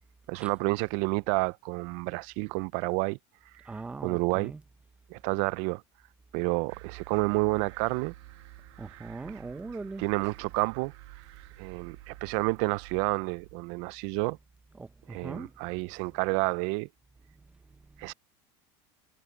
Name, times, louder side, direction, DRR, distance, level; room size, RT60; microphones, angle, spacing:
voice 1, 0.3-3.2 4.0-4.5 5.1-5.8 6.3-8.1 10.0-10.9 11.6-14.4 15.1-16.9 18.0-18.1, right 27 dB, 55° right, 0.4 m, -29 dB
voice 2, 3.7-4.6 8.8-10.0 14.8-15.5, right 3 dB, 10° right, 0.6 m, -40 dB
sound 1, 6.7-13.5, right 21 dB, 85° right, 1.3 m, -50 dB
sound 2, 7.2-13.8, left 23 dB, 75° left, 4.6 m, -69 dB
cardioid pair, 165°, 14 cm